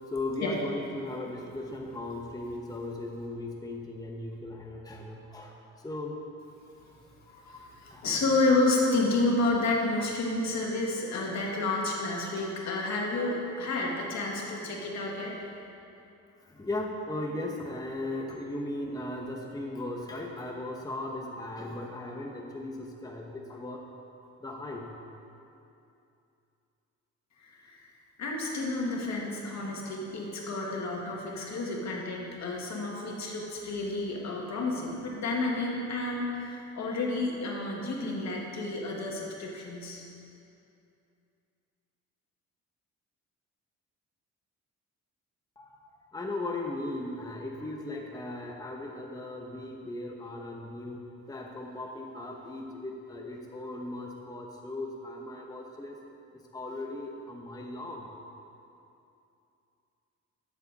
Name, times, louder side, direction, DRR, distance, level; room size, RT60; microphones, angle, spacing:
voice 1, 0.1-6.2 6.9-7.0 7.3-8.1 10.0-10.1 12.4-12.5 16.5-23.8 24.4-24.9 45.6-45.8 46.1-51.0 51.3-56.0 56.5-58.1, left 2 dB, 10° left, 0 dB, 1.0 m, -37 dB
voice 2, 7.4-15.3 27.4-27.9 28.2-40.0, left 2 dB, 65° left, -2 dB, 1.9 m, -30 dB
13.0 x 7.2 x 4.1 m, 2.7 s
cardioid pair, 90°, 30 cm